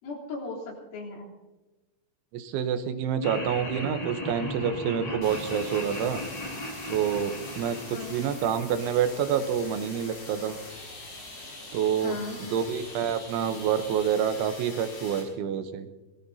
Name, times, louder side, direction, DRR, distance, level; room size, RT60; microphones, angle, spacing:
voice 1, 0.0-1.3 7.9-8.4 12.0-12.4, left 3 dB, 90° left, -4 dB, 6.1 m, -37 dB
voice 2, 2.3-6.2 6.9-10.6 11.7-15.9, right 8 dB, 85° right, 9 dB, 3.4 m, -28 dB
Laughter, 3.2-9.4, left 1 dB, 75° left, 0.3 m, -37 dB
sound 1, 5.2-15.2, left 2 dB, 45° left, 7.6 m, -43 dB
25.5 x 18.5 x 2.8 m, 1.2 s
omnidirectional pair, 5.3 m